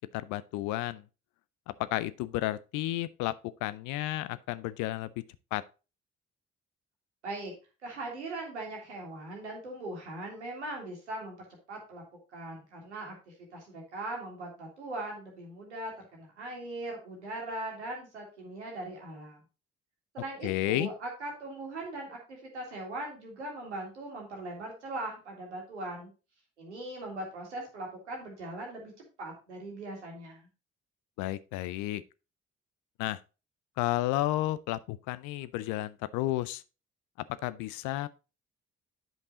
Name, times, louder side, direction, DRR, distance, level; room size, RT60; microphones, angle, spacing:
voice 1, 0.1-1.0 1.8-3.3 3.6-5.2 5.5-5.6 20.4-20.9 31.2-32.0 33.0-33.2 33.8-36.6 37.4-38.1, left 16 dB, 65° left, 0.6 m, -32 dB
voice 2, 7.2-7.5 7.8-12.0 12.3-13.1 13.5-19.4 20.1-26.1 26.6-28.9 29.2-30.5, right 2 dB, 85° right, 2.0 m, -40 dB
9.0 x 5.3 x 3.9 m
figure-of-eight pair, 40°, 33 cm